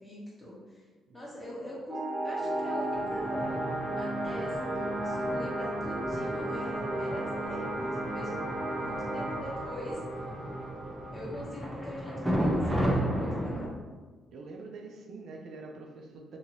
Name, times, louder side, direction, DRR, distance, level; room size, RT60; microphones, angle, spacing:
voice 1, 0.0-0.8 1.1-3.6 3.9-10.2 11.1-13.7, equal, 10° left, -7 dB, 1.2 m, -42 dB
sound 1, 1.9-13.0, right 1 dB, 25° right, 1.1 m, -34 dB
sound 2, 2.9-13.7, equal, 10° right, 0.6 m, -35 dB
voice 2, 14.3-16.4, right 3 dB, 70° right, 1 dB, 0.4 m, -45 dB
2.7 x 2.7 x 3.0 m, 1.3 s
cardioid pair, 90°, 0 cm